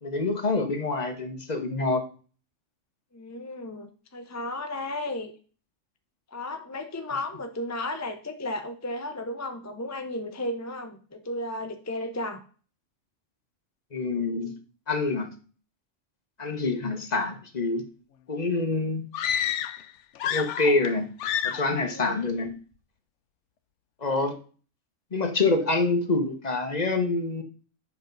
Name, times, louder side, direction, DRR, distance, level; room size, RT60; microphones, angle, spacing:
voice 1, 0.0-2.0 13.9-14.6 14.9-15.3 16.4-17.8 18.3-19.0 20.2-21.1 21.4-22.5 24.0-24.3 25.1-27.4, left 3 dB, 35° left, 6 dB, 1.0 m, -26 dB
voice 2, 3.1-5.3 6.3-12.4 21.9-22.3, left 1 dB, 20° left, 6 dB, 0.5 m, -34 dB
sound 1, 19.1-19.9 20.2-20.9 21.2-21.7, left 9 dB, 75° left, 0.9 m, -29 dB
7.7 x 5.9 x 3.9 m, 0.39 s
omnidirectional pair, 1.3 m